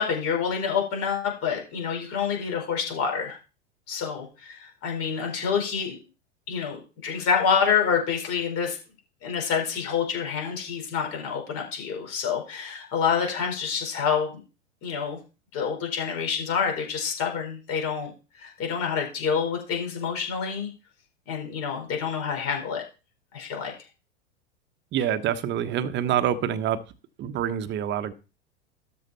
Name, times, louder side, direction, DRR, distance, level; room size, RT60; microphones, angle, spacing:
voice 1, 0.0-3.4 3.9-6.0 6.5-8.8 9.2-14.4 14.8-15.2 15.5-18.1 18.4-20.7 21.3-22.8 23.3-23.7, left 6 dB, 40° left, 2 dB, 4.5 m, -27 dB
voice 2, 24.9-26.8 27.2-28.1, right 10 dB, 30° right, 11 dB, 1.1 m, -26 dB
12.5 x 4.9 x 4.2 m, 0.32 s
figure-of-eight pair, 90°, 35 cm